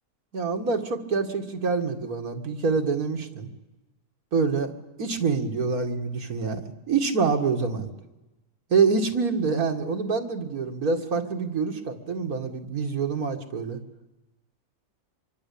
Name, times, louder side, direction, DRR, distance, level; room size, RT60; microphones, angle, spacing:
voice 1, 0.3-3.5 4.3-4.7 5.0-7.9 8.7-13.8, right 5 dB, 65° right, 4 dB, 2.5 m, -26 dB
24.5 x 24.0 x 8.6 m, 1.0 s
omnidirectional pair, 1.7 m